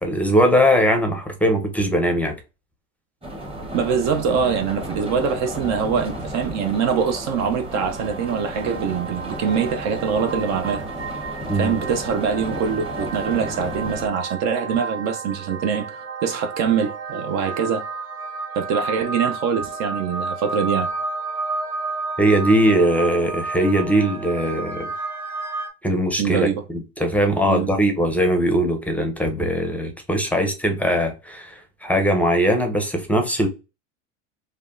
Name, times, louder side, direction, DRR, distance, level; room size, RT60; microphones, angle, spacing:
voice 1, 0.0-2.3 11.5-11.8 22.2-24.9 25.8-33.5, equal, 5° left, 0.6 m, -20 dB
sound 1, 3.2-14.1, equal, 15° right, 1.0 m, -33 dB
voice 2, 3.7-10.9 11.5-17.8 18.6-20.9 26.2-26.6 27.4-27.7, right 6 dB, 45° right, 0.5 m, -24 dB
sound 2, 7.6-25.7, right 3 dB, 60° right, 1.5 m, -32 dB
3.4 x 2.1 x 2.4 m
hypercardioid pair, 90°, 38 cm